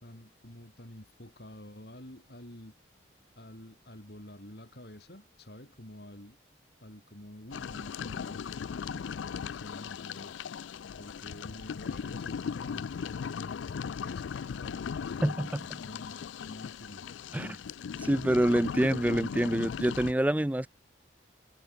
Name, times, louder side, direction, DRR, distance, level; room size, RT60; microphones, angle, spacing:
voice 1, 0.0-2.7 3.4-6.4 6.8-10.3 11.0-12.9 13.3-17.6, left 1 dB, 55° left, 4.0 m, -49 dB
sound 1, 7.5-20.1, left 6 dB, 80° left, 0.4 m, -38 dB
voice 2, 15.2-15.6 17.3-17.5 18.0-20.7, right 1 dB, 10° right, 0.4 m, -26 dB
head